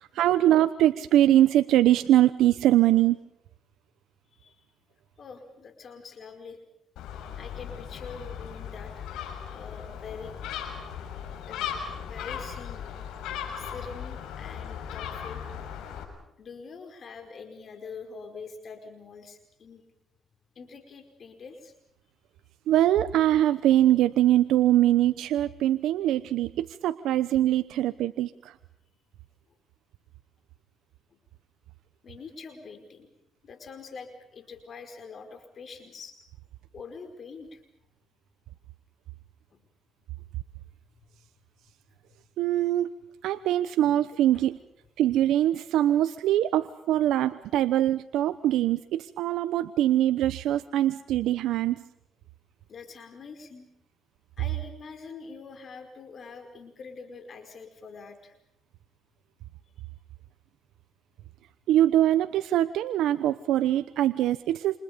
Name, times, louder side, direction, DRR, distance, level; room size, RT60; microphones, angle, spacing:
voice 1, 0.0-3.2 22.7-28.5 42.4-42.9 43.2-44.6 45.0-51.7 61.7-64.8, right 13 dB, 85° right, 11 dB, 0.9 m, -23 dB
voice 2, 5.2-6.6 7.4-9.1 9.5-10.8 11.5-11.7 12.0-12.8 13.5-15.4 16.4-19.8 20.5-21.7 31.1-31.2 32.0-33.1 33.4-36.2 36.7-37.6 44.3-44.4 52.7-53.7 54.4-58.3, left 5 dB, 50° left, 6 dB, 4.9 m, -44 dB
Gull seagull, 7.0-16.0, left 8 dB, 85° left, 6.7 m, -37 dB
29.0 x 27.5 x 5.3 m, 0.79 s
cardioid pair, 90°, 0 cm